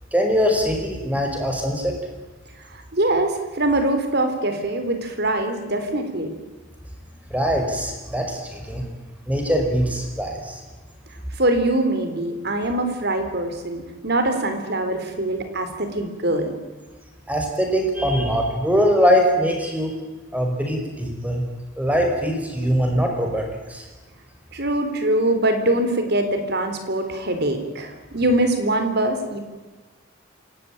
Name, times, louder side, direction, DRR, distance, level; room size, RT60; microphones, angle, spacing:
voice 1, 0.1-2.0 7.3-8.8 9.3-10.6 17.3-19.9 20.3-21.4 21.8-23.8, equal, 5° right, 2 dB, 5.3 m, -22 dB
voice 2, 2.7-6.3 11.4-16.5 24.5-29.4, right 1 dB, 55° right, 7 dB, 3.9 m, -23 dB
27.0 x 18.0 x 9.0 m, 1.3 s
head